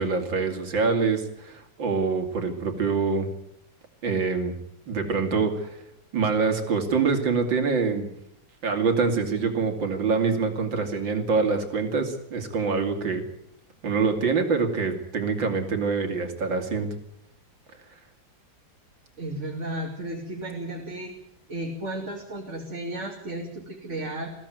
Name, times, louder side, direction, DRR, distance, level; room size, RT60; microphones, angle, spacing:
voice 1, 0.0-3.3 4.0-4.5 4.9-5.8 6.1-8.1 8.6-13.2 13.8-16.9, right 4 dB, 75° right, 5 dB, 3.4 m, -25 dB
voice 2, 19.2-21.1 21.5-24.3, right 1 dB, 40° right, 0 dB, 3.0 m, -34 dB
21.5 x 16.0 x 9.3 m, 0.74 s
omnidirectional pair, 2.0 m